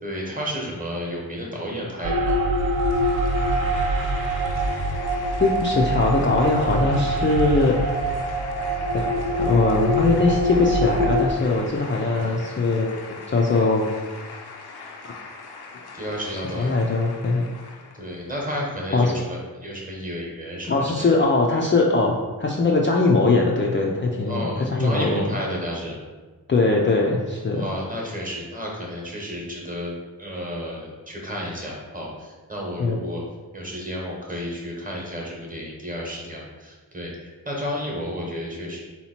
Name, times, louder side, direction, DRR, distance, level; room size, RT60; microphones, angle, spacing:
voice 1, 0.0-2.4 11.9-12.4 15.9-16.7 17.9-21.1 24.3-26.0 27.5-29.9 30.2-33.2 33.5-38.8, equal, 20° right, -2 dB, 0.9 m, -32 dB
sound 1, 2.0-11.3, right 1 dB, 70° right, 0.6 m, -24 dB
sound 2, 2.3-18.3, left 4 dB, 90° left, 0.6 m, -41 dB
voice 2, 5.4-7.8 8.9-9.1 9.4-13.0 13.3-13.9 15.0-15.1 16.3-17.5 18.9-19.2 20.7-25.2 26.5-27.7 32.8-33.0, left 3 dB, 35° left, -2 dB, 0.4 m, -21 dB
3.9 x 2.9 x 4.2 m, 1.3 s
wide cardioid pair, 140°, 37 cm